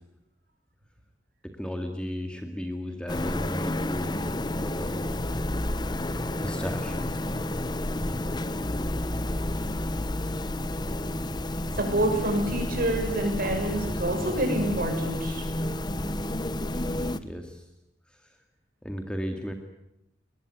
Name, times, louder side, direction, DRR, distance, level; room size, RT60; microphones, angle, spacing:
voice 1, 1.4-4.2 4.4-5.1 6.4-7.1 16.7-17.6 18.8-19.5, equal, 5° left, 5 dB, 2.1 m, -35 dB
sound 1, 3.1-17.2, left 1 dB, 25° left, 0.8 m, -30 dB
voice 2, 11.8-15.4, right 1 dB, 50° right, 3 dB, 6.8 m, -27 dB
22.5 x 20.0 x 9.4 m, 0.82 s
head